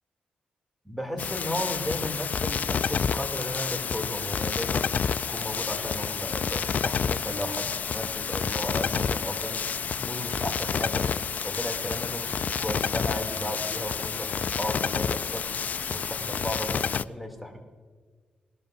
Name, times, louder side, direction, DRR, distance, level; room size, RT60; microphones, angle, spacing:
voice 1, 0.8-4.9 5.3-9.6 10.0-11.1 11.4-17.6, equal, ahead, 4 dB, 2.6 m, -35 dB
sound 1, 1.2-17.0, left 6 dB, 55° left, 0.4 m, -29 dB
21.0 x 12.5 x 2.6 m, 1.5 s
cardioid pair, 70°, 3 cm